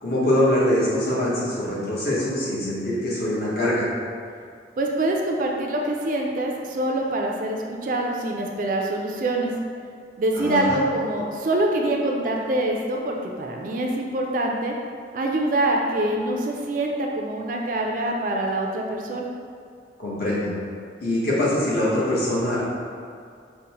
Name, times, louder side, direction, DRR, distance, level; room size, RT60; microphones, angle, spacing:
voice 1, 0.0-3.8 10.3-10.8 20.0-20.5 21.0-22.6, left 1 dB, 55° left, -8 dB, 1.0 m, -23 dB
voice 2, 4.8-9.5 10.2-14.7 15.1-19.2, right 1 dB, 45° right, 0 dB, 0.3 m, -25 dB
5.2 x 2.1 x 2.8 m, 2.3 s
head